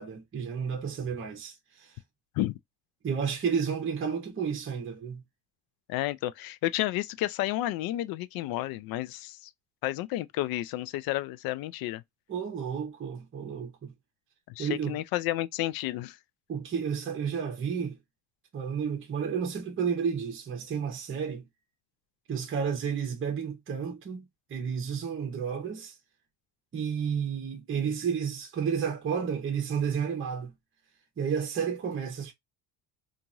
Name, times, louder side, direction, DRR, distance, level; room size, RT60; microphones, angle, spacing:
voice 1, 0.0-1.9 3.0-5.2 12.3-13.9 14.6-15.0 16.5-18.0 18.5-21.4 22.3-24.2 24.5-25.9 26.7-30.5 31.2-32.3, right 7 dB, 30° right, 1.0 m, -31 dB
voice 2, 5.9-9.5 9.8-12.0 14.5-16.2, left 15 dB, 60° left, 0.5 m, -31 dB
2.9 x 2.6 x 2.5 m
supercardioid pair, 100°, 41 cm